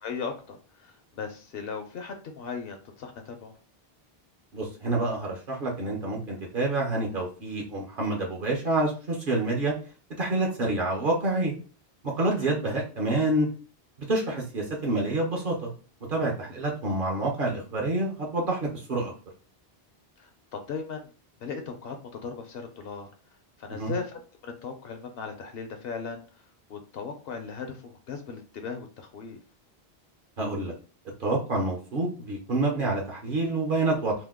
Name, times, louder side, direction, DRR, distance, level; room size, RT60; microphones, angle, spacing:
voice 1, 0.0-3.5 10.4-10.6 12.4-12.5 20.2-21.1 21.4-23.1 23.6-26.2 26.7-29.4, left 5 dB, 70° left, 6 dB, 0.8 m, -38 dB
voice 2, 4.5-9.7 10.2-11.5 12.2-13.5 14.1-15.7 16.1-19.1 23.7-23.9 30.4-30.7 31.2-34.1, right 2 dB, 60° right, -1 dB, 0.9 m, -27 dB
2.8 x 2.1 x 3.4 m, 0.36 s
omnidirectional pair, 1.0 m